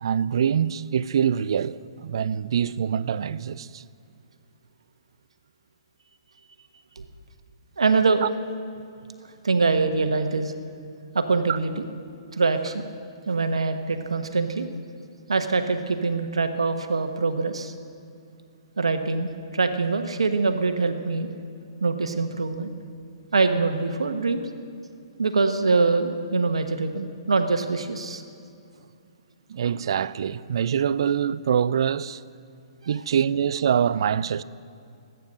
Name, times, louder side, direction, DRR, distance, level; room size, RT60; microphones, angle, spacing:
voice 1, 0.0-3.8 8.2-8.3 11.5-11.6 29.5-32.2 32.9-34.4, right 8 dB, 60° right, 0.5 m, -24 dB
voice 2, 7.8-8.2 9.4-10.5 11.1-11.9 12.3-12.8 13.3-14.7 15.3-17.7 18.8-21.3 21.8-22.7 23.3-24.5 25.2-28.2 32.8-33.0, right 4 dB, 80° right, 1.2 m, -24 dB
24.5 x 9.3 x 6.3 m
hypercardioid pair, 130°, 3 cm